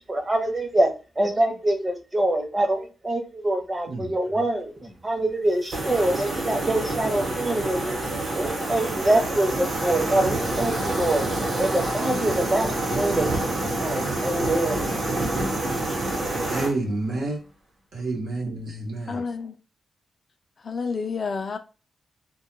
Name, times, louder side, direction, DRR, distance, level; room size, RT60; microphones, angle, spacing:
voice 1, 0.1-0.9 1.2-8.1 8.3-13.5 13.8-14.9, right 1 dB, 25° right, 0.7 m, -25 dB
sound 1, 5.7-16.7, right 2 dB, 55° right, 0.9 m, -27 dB
voice 2, 16.5-17.4 17.9-19.2, right 2 dB, 90° right, 0.8 m, -29 dB
voice 3, 19.1-19.6 20.6-21.6, left 5 dB, 50° left, 0.3 m, -29 dB
2.2 x 2.1 x 3.0 m
cardioid pair, 105°, 0 cm